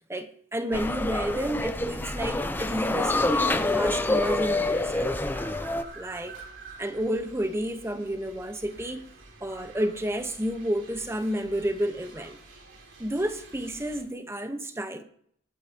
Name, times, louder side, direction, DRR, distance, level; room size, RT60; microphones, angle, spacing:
voice 1, 0.1-5.1 5.9-6.4 6.8-9.1 9.4-12.4 13.0-15.0, equal, 15° right, 0.9 m, -31 dB
sound 1, 0.7-5.8, left 2 dB, 10° left, 0.6 m, -27 dB
sound 2, 3.0-14.0, right 3 dB, 75° right, 3.3 m, -48 dB
19.0 x 8.7 x 2.9 m
head